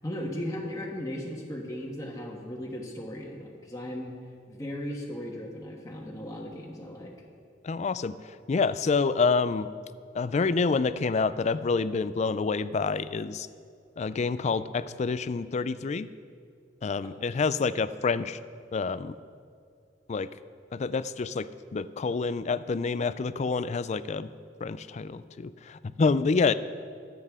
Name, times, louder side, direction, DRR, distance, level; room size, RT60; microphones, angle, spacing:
voice 1, 0.0-4.1 4.5-7.1, left 1 dB, 20° left, -2 dB, 1.3 m, -36 dB
voice 2, 7.6-9.7 10.1-13.5 14.0-16.1 16.8-18.4 18.7-19.1 20.1-20.3 20.7-24.3 24.6-26.5, left 4 dB, 40° left, 14 dB, 0.4 m, -27 dB
23.0 x 7.7 x 3.6 m, 2.2 s
head